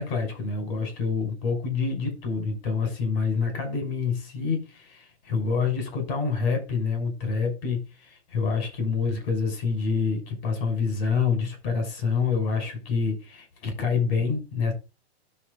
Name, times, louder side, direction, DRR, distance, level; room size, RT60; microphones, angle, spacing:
voice 1, 0.0-14.7, left 5 dB, 60° left, 6.0 m, -27 dB
10.0 x 6.9 x 4.0 m
hypercardioid pair, 125°, 32 cm